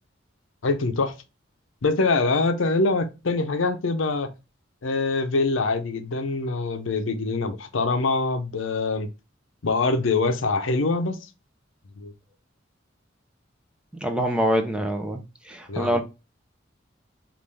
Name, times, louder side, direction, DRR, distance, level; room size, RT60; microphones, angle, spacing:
voice 1, 0.6-1.1 1.8-4.3 4.8-9.1 9.6-11.2 12.0-12.1 15.7-16.0, left 3 dB, 90° left, 0.6 m, -24 dB
voice 2, 14.0-15.2 15.5-16.0, equal, 5° right, 0.6 m, -24 dB
5.2 x 2.5 x 3.3 m
head